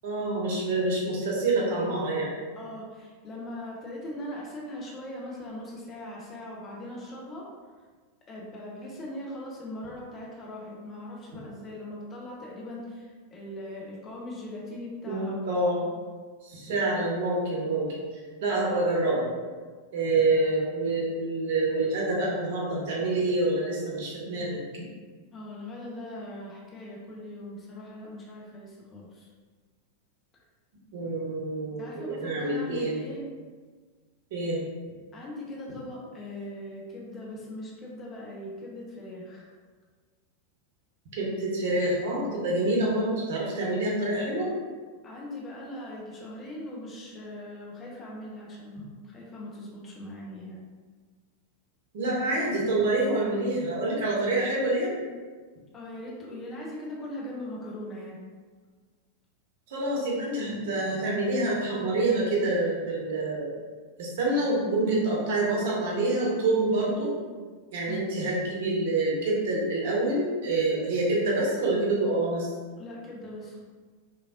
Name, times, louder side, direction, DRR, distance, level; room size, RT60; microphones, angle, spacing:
voice 1, 0.0-2.4 15.0-15.9 16.4-17.9 18.4-19.3 19.9-24.6 30.9-33.0 34.3-34.6 41.2-44.5 51.9-55.0 59.7-63.5 64.0-67.1 67.7-72.5, right 2 dB, 55° right, -4 dB, 0.8 m, -27 dB
voice 2, 2.5-7.5 8.3-15.5 25.3-29.3 31.8-33.2 35.1-39.5 45.0-50.6 55.7-58.2 67.9-68.2 72.8-73.6, left 1 dB, 25° left, -4 dB, 0.7 m, -40 dB
3.2 x 2.5 x 2.5 m, 1.5 s
figure-of-eight pair, 90°, 0 cm